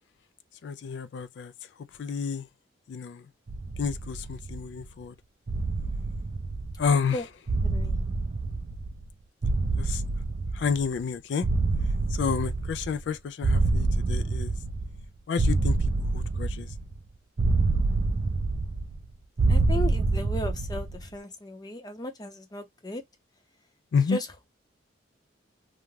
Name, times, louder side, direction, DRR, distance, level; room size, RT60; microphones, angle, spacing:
voice 1, 0.6-1.5 2.0-2.5 2.9-3.2 3.8-5.1 6.8-7.2 9.8-10.0 10.5-11.5 12.1-14.5 15.3-15.8 16.1-16.7 23.9-24.2, left 6 dB, 65° left, 0.3 m, -29 dB
sound 1, 3.5-4.8 5.5-7.0 7.5-9.1 9.4-11.0 11.4-13.1 13.4-15.0 15.4-17.0 17.4-19.0 19.4-21.0, right 3 dB, 40° right, 0.4 m, -27 dB
voice 2, 7.6-8.0 19.5-23.0 24.1-24.5, left 1 dB, 20° left, 0.6 m, -36 dB
2.5 x 2.2 x 3.1 m
head